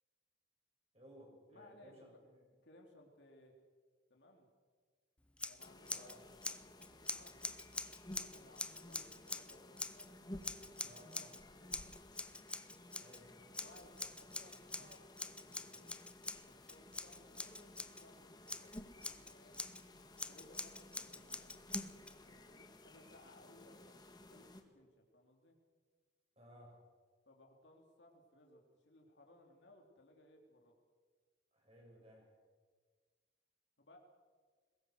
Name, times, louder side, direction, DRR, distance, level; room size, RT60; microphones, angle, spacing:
voice 1, 0.9-2.4 5.9-6.2 10.8-11.2 13.0-13.3 26.4-26.8 31.5-32.3, equal, 30° right, -1 dB, 7.3 m, -60 dB
voice 2, 1.5-2.2 2.6-3.5 4.1-4.5 5.4-7.7 8.0-12.2 13.6-16.0 16.4-19.5 20.3-21.8 22.2-25.6 27.3-30.8 33.8-34.0, left 1 dB, 70° left, 1 dB, 3.4 m, -63 dB
Scissors, 5.4-6.2 6.4-10.1 10.4-11.4 11.7-13.2 13.5-18.0 18.5-19.8 20.2-22.1, left 2 dB, 5° left, 0.5 m, -45 dB
sound 1, 5.6-24.6, left 1 dB, 20° left, 1.7 m, -55 dB
22.5 x 20.0 x 6.5 m, 1.5 s
head